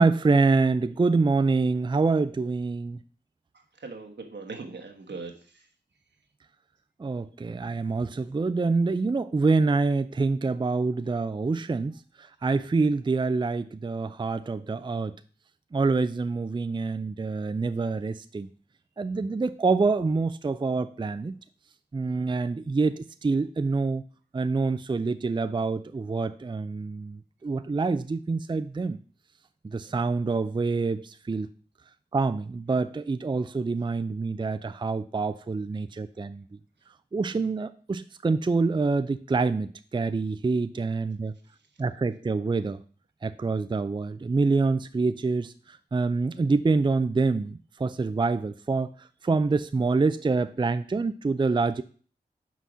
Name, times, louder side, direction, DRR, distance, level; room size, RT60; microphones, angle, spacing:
voice 1, 0.0-3.0 7.0-15.2 15.7-18.5 19.0-21.3 21.9-24.0 24.3-29.0 29.6-31.5 32.1-36.4 37.1-41.3 41.8-42.8 43.2-48.9 49.2-51.8, right 3 dB, 25° right, 12 dB, 0.4 m, -26 dB
voice 2, 3.5-5.7, right 4 dB, 80° right, 3 dB, 1.2 m, -40 dB
5.7 x 4.1 x 6.1 m, 0.42 s
cardioid pair, 50°, 18 cm